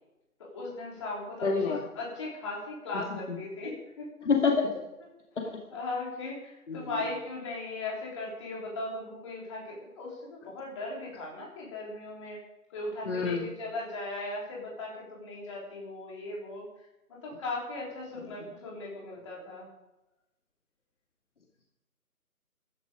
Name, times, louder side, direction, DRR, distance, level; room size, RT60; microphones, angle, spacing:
voice 1, 0.4-4.1 5.4-12.4 12.7-16.6 17.1-19.7, left 2 dB, 20° left, -4 dB, 3.7 m, -38 dB
voice 2, 1.4-1.8 4.3-4.7 6.7-7.0 13.0-13.5 18.2-18.3, left 5 dB, 50° left, 0 dB, 2.4 m, -27 dB
15.5 x 12.0 x 5.1 m, 0.94 s
figure-of-eight pair, 165°, 46 cm